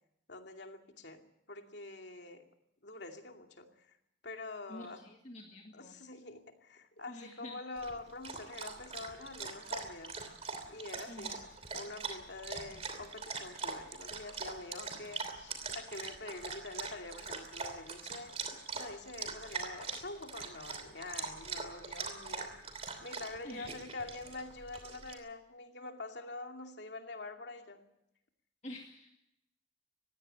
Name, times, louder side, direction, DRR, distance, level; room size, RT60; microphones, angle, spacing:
voice 1, 0.3-2.4 2.8-3.9 4.2-5.0 5.7-10.2 10.7-11.4 11.7-18.4 18.7-22.5 23.0-27.8, left 3 dB, 65° left, 4 dB, 2.5 m, -46 dB
voice 2, 4.7-5.9 7.1-7.6 11.1-11.5 23.4-23.8 28.6-29.1, left 1 dB, 35° left, 2 dB, 1.8 m, -48 dB
Dog, 7.8-25.1, right 5 dB, 35° right, 2.9 m, -42 dB
20.0 x 16.0 x 9.0 m, 0.80 s
head